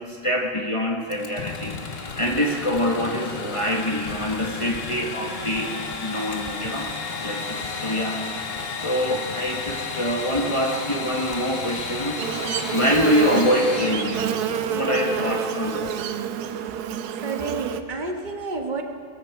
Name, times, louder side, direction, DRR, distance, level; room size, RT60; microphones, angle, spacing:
voice 1, 0.0-1.8 2.2-6.9 7.2-8.3 8.8-12.2 12.7-14.2 14.7-16.1, equal, 20° left, 0 dB, 1.1 m, -25 dB
Engine / Sawing, 1.1-14.8, left 4 dB, 45° left, 1.2 m, -33 dB
sound 1, 1.4-16.9, left 5 dB, 75° left, 0.3 m, -41 dB
Buzz, 12.2-17.8, right 8 dB, 75° right, 1.2 m, -28 dB
voice 2, 17.2-18.8, right 4 dB, 30° right, 4 dB, 1.2 m, -29 dB
19.0 x 14.0 x 4.6 m, 2.2 s
omnidirectional pair, 1.7 m